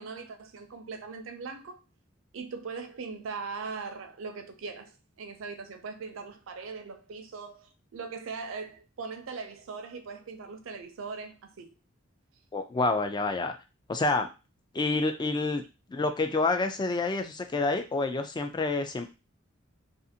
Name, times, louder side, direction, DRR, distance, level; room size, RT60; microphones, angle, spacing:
voice 1, 0.0-1.8 2.3-11.7, right 4 dB, 80° right, 0.5 m, -40 dB
voice 2, 12.5-13.6 13.9-14.3 14.7-15.6 15.9-19.1, left 3 dB, 20° left, 0.3 m, -28 dB
2.5 x 2.4 x 2.7 m
head